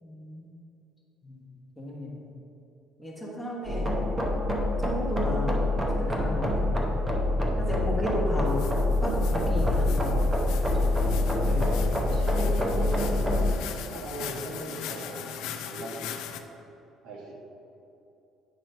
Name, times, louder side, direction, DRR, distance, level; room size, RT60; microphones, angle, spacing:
voice 1, 0.0-0.5 1.2-1.5 1.8-2.3 3.0-3.9 4.8-5.7 6.0-6.8 7.6-10.3 10.8-10.9 11.4-11.9, equal, 10° left, -3 dB, 1.2 m, -35 dB
sound 1, 3.7-13.5, left 1 dB, 15° right, 0.8 m, -25 dB
sound 2, 8.5-16.4, left 9 dB, 85° left, 0.4 m, -40 dB
voice 2, 11.4-13.3 13.9-16.2 17.0-17.3, right 2 dB, 75° right, -2 dB, 1.4 m, -39 dB
9.0 x 3.0 x 5.4 m, 2.8 s
cardioid pair, 130°, 0 cm